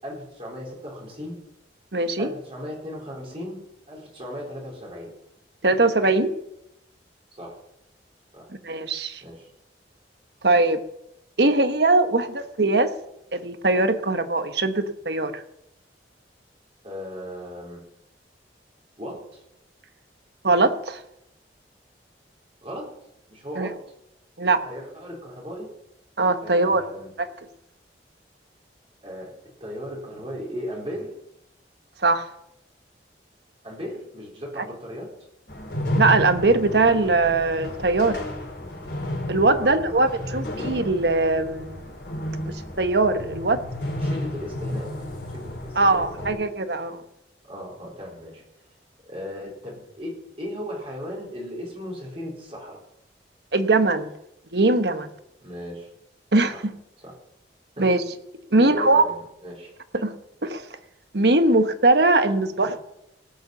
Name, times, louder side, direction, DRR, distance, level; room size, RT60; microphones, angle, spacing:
voice 1, 0.0-1.4 2.2-3.6 3.9-5.1 7.3-7.6 8.3-8.5 9.2-9.5 16.8-17.8 19.0-19.4 22.6-22.9 23.3-23.7 24.6-25.7 26.4-27.1 29.0-29.3 29.6-31.1 33.6-35.1 39.5-40.4 44.0-44.9 45.3-46.4 47.4-48.4 49.0-52.8 55.4-55.9 56.5-56.6 57.0-57.1 57.8-57.9 58.5-59.7, equal, 35° right, -3 dB, 4.3 m, -36 dB
voice 2, 1.9-2.3 5.6-6.3 8.6-9.2 10.4-10.8 11.4-12.9 13.3-15.4 20.4-21.0 23.6-23.7 24.4-24.6 26.2-26.8 27.2-27.3 32.0-32.3 35.9-38.2 39.3-41.8 42.8-43.6 45.8-47.0 53.5-54.1 54.5-55.1 56.3-56.5 57.8-58.0 58.5-59.0 59.9-60.1 60.4-60.6 61.1-62.8, right 2 dB, 65° right, 9 dB, 1.1 m, -21 dB
sound 1, 35.5-46.3, left 1 dB, 80° left, 4.6 m, -32 dB
18.0 x 6.9 x 7.2 m, 0.82 s
head